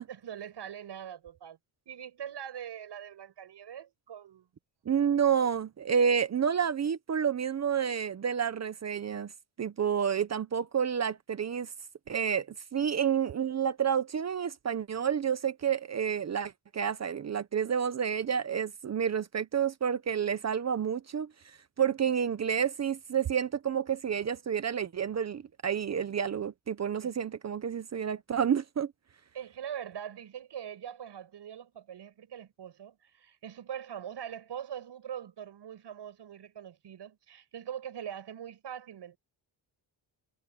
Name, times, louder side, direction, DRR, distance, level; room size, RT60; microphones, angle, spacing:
voice 1, 0.0-1.6 1.9-4.5 27.0-27.1 29.3-39.2, right 9 dB, 65° right, 7.8 m, -42 dB
voice 2, 4.9-9.3 9.6-11.7 12.1-12.5 12.7-21.3 21.8-28.9, right 7 dB, 35° right, 0.8 m, -29 dB
wide cardioid pair, 170°, 44 cm